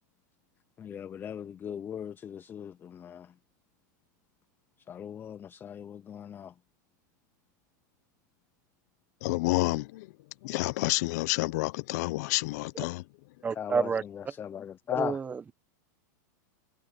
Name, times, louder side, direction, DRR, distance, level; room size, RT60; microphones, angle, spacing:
voice 1, 0.8-3.3 4.9-6.5 13.6-15.2, left 8 dB, 20° left, 0.5 m, -38 dB
voice 2, 9.2-10.1 10.4-13.0, left 21 dB, 60° left, 0.7 m, -29 dB
voice 3, 13.4-14.0 15.0-15.5, right 5 dB, 15° right, 1.1 m, -29 dB
supercardioid pair, 135°, 10 cm